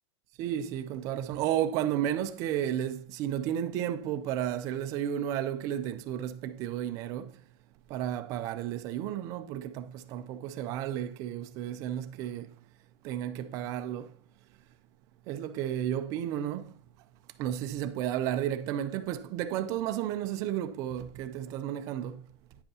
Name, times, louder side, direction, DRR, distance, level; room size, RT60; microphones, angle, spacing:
voice 1, 0.4-7.4 7.9-12.5 13.0-14.1 15.3-16.7 17.4-22.2, right 11 dB, 20° right, 0.4 m, -32 dB
10.0 x 7.8 x 2.8 m
supercardioid pair, 175°, 15 cm